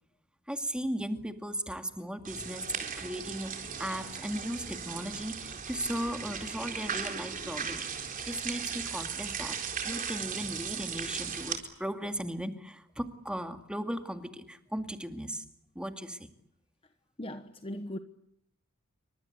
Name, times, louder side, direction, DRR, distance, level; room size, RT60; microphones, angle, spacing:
voice 1, 0.5-2.7 3.0-7.9 8.2-15.5 15.7-16.3, equal, 5° right, 2.3 m, -37 dB
sound 1, 2.2-11.6, right 6 dB, 35° right, 4.1 m, -37 dB
voice 2, 17.2-18.0, left 1 dB, 25° left, 1.1 m, -38 dB
28.5 x 25.5 x 8.1 m
head